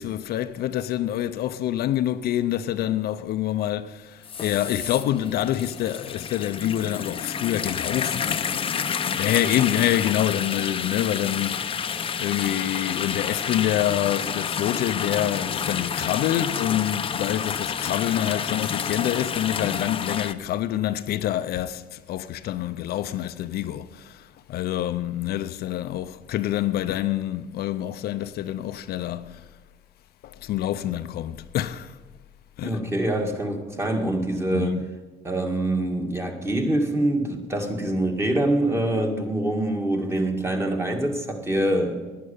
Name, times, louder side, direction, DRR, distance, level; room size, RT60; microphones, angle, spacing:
voice 1, 0.0-8.4 9.2-11.8 12.2-29.4 30.2-32.0 32.6-32.8 34.5-34.9, left 12 dB, 70° left, 0.6 m, -26 dB
sound 1, 4.2-20.3, left 7 dB, 35° left, 0.6 m, -29 dB
voice 2, 32.6-34.8 35.2-41.9, right 1 dB, 15° right, 2.0 m, -25 dB
11.0 x 10.5 x 8.6 m
cardioid pair, 110°, 17 cm